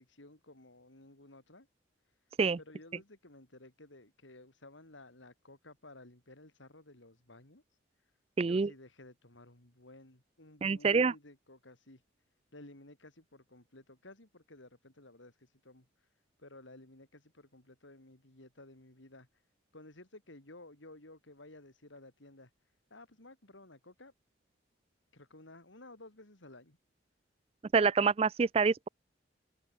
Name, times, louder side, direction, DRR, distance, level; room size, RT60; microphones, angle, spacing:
voice 1, 0.0-1.7 2.6-7.6 8.5-12.0 12.5-15.9 16.4-19.4 19.7-22.5 22.9-24.1 25.1-26.8, left 2 dB, 75° left, 3.6 m, -55 dB
voice 2, 8.4-8.7 10.6-11.1 27.7-28.9, right 5 dB, 30° right, 0.3 m, -26 dB
head